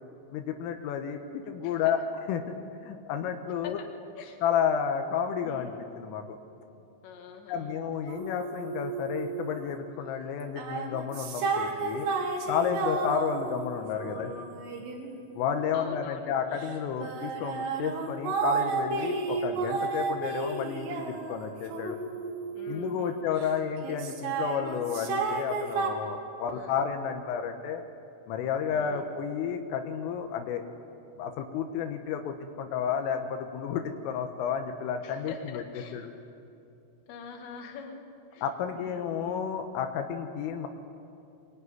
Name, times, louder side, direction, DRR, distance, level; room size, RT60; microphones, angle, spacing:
voice 1, 0.3-1.2 1.5-2.0 2.3-3.8 4.4-6.4 7.5-12.1 12.5-14.3 15.4-22.0 22.7-27.8 28.3-30.6 31.2-35.6 35.9-36.0 38.4-40.7, left 7 dB, 90° left, 5 dB, 3.8 m, -31 dB
voice 2, 5.4-5.9 7.0-7.8 12.4-12.8 13.7-14.6 15.7-16.3 22.5-23.7 26.5-26.8 28.7-29.2 35.0-36.0 37.1-38.0 38.3-39.4, left 6 dB, 65° left, 3 dB, 4.1 m, -45 dB
sound 1, 8.1-9.8 10.4-16.0 16.6-23.5 23.8-25.9, right 4 dB, 85° right, 5.0 m, -32 dB
22.5 x 21.5 x 9.6 m, 2.7 s
omnidirectional pair, 5.7 m